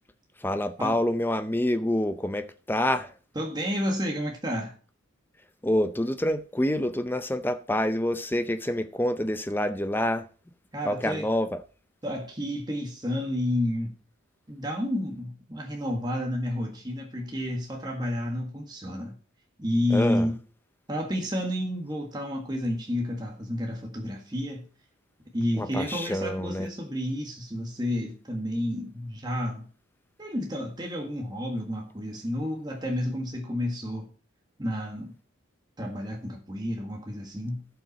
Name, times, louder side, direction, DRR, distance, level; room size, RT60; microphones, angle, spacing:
voice 1, 0.4-3.1 5.6-10.3 10.8-11.5 19.9-20.3 25.6-26.7, left 1 dB, 10° left, 0.6 m, -27 dB
voice 2, 3.3-4.8 10.7-11.3 12.0-13.9 14.5-19.2 19.6-20.4 20.9-24.7 25.3-29.7 30.2-34.1 34.6-35.1 35.8-37.7, left 1 dB, 20° right, 1.6 m, -30 dB
16.5 x 5.7 x 4.2 m
head